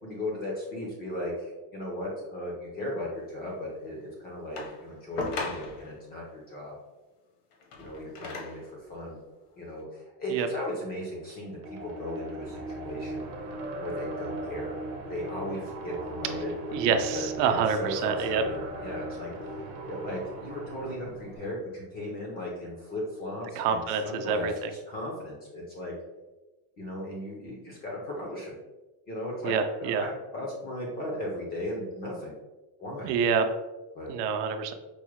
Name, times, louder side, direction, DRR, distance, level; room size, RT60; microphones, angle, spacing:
voice 1, 0.0-6.7 7.8-9.2 9.6-13.3 13.8-14.8 15.1-19.3 19.9-25.9 26.8-28.6 29.1-29.6 29.8-30.1 30.3-32.4 32.8-33.1 33.9-34.1, left 1 dB, 20° left, -2 dB, 0.3 m, -36 dB
sound 1, 4.6-6.0 7.5-8.7 9.5-9.6, left 3 dB, 65° left, 0.9 m, -37 dB
sound 2, 11.6-21.0, right 1 dB, 35° right, 0.5 m, -39 dB
Boat Water vehicle / Engine, 12.4-21.4, right 1 dB, 85° left, 1.4 m, -46 dB
voice 2, 16.7-18.4 23.6-24.5 29.4-30.0 33.0-33.4 34.1-34.7, right 6 dB, 80° right, 7 dB, 0.6 m, -27 dB
4.7 x 2.1 x 3.0 m, 1.1 s
cardioid pair, 160°, 48 cm